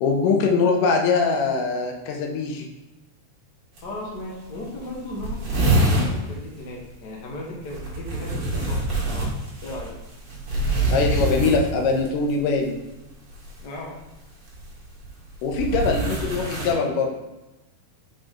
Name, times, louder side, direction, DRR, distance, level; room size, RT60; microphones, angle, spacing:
voice 1, 0.0-2.7 10.9-12.8 15.4-17.1, left 4 dB, 85° left, 2 dB, 2.4 m, -22 dB
voice 2, 3.8-9.3 9.6-9.9 13.6-13.9, left 1 dB, 65° left, -2 dB, 1.0 m, -36 dB
sound 1, 3.8-3.9 4.2-4.3 4.5-4.6 4.8-6.1 7.7-12.1 13.3-13.6 14.5-16.7, right 2 dB, 45° right, 2.1 m, -24 dB
5.9 x 5.1 x 3.7 m, 1.0 s
omnidirectional pair, 3.8 m